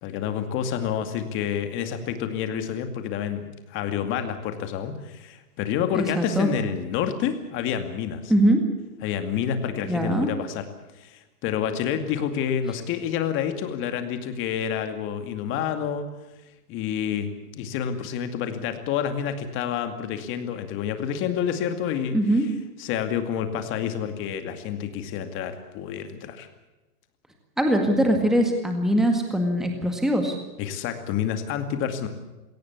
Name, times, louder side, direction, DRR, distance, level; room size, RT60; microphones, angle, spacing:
voice 1, 0.0-8.3 9.0-10.6 11.0-16.1 16.7-22.2 22.8-26.5 30.6-32.1, left 8 dB, 25° left, 8 dB, 2.3 m, -28 dB
voice 2, 5.9-6.5 8.3-8.6 9.8-10.3 22.1-22.5 27.6-30.4, right 1 dB, ahead, 4 dB, 1.9 m, -22 dB
22.5 x 17.0 x 8.3 m, 1.1 s
hypercardioid pair, 155°, 47 cm